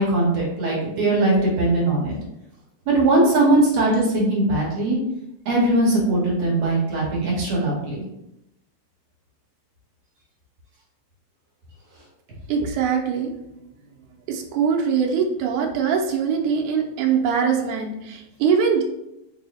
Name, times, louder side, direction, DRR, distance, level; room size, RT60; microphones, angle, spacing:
voice 1, 0.0-2.2 2.9-5.0 5.5-8.0, right 2 dB, 70° right, -5 dB, 2.2 m, -20 dB
voice 2, 12.5-13.3 14.3-18.8, right 6 dB, 90° right, 1 dB, 2.0 m, -22 dB
4.7 x 2.0 x 4.0 m, 0.86 s
omnidirectional pair, 3.3 m